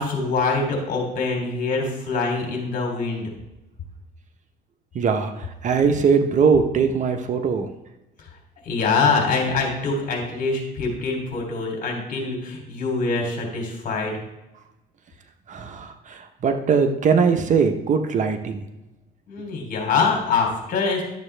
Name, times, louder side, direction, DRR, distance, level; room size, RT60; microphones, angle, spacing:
voice 1, 0.0-3.3 8.6-14.1 19.3-21.0, left 4 dB, 55° left, 1 dB, 3.2 m, -24 dB
voice 2, 4.9-7.7 15.5-18.7, right 5 dB, 45° right, 7 dB, 1.0 m, -21 dB
12.0 x 7.3 x 3.4 m, 0.96 s
cardioid pair, 110°, 17 cm